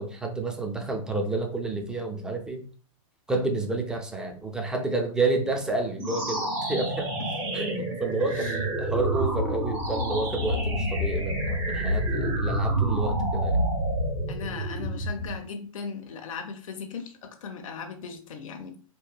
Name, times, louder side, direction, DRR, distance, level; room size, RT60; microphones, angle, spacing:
voice 1, 0.0-2.7 3.3-7.1 7.5-13.6, right 3 dB, 5° right, 3 dB, 0.3 m, -30 dB
sound 1, 6.0-15.4, right 1 dB, 45° right, 1.4 m, -28 dB
voice 2, 7.2-8.6 11.2-11.3 14.3-18.8, left 5 dB, 65° left, 5 dB, 0.5 m, -38 dB
2.8 x 2.2 x 2.2 m, 0.39 s
hypercardioid pair, 115°, 18 cm